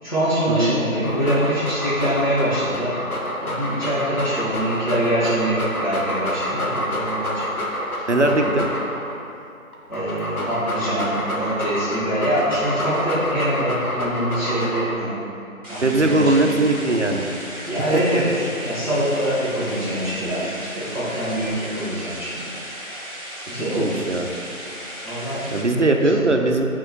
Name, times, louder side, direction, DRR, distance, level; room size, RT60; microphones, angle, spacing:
voice 1, 0.0-3.1 3.4-7.5 8.1-8.4 9.9-15.2 15.6-16.6 17.6-22.4 23.5-24.0 25.0-26.3, right 1 dB, 30° left, -13 dB, 1.5 m, -24 dB
Dog, 0.9-9.2 9.7-15.1, equal, 85° left, 1.3 m, -28 dB
voice 2, 8.1-8.7 15.8-17.2 23.5-24.3 25.5-26.6, right 2 dB, 55° right, 3 dB, 0.6 m, -20 dB
sound 1, 15.6-25.6, equal, 25° right, 1.2 m, -35 dB
9.5 x 4.4 x 3.0 m, 2.6 s
figure-of-eight pair, 165°, 42 cm